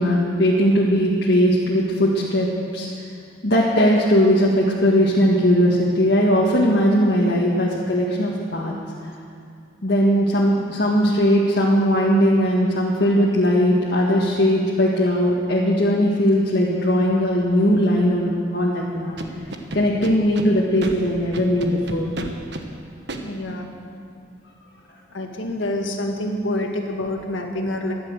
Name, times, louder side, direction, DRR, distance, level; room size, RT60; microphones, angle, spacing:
voice 1, 0.0-2.5 2.7-2.9 3.4-8.7 9.8-19.2 19.7-22.1, equal, 60° left, -5 dB, 1.8 m, -19 dB
Scratching (performance technique), 19.2-20.5 20.8-20.9 21.3-22.6 23.1-23.2, right 2 dB, 65° right, 1.3 m, -31 dB
voice 2, 23.2-23.7 25.1-27.9, left 1 dB, 90° left, 2 dB, 1.9 m, -27 dB
15.0 x 11.5 x 8.1 m, 2.4 s
head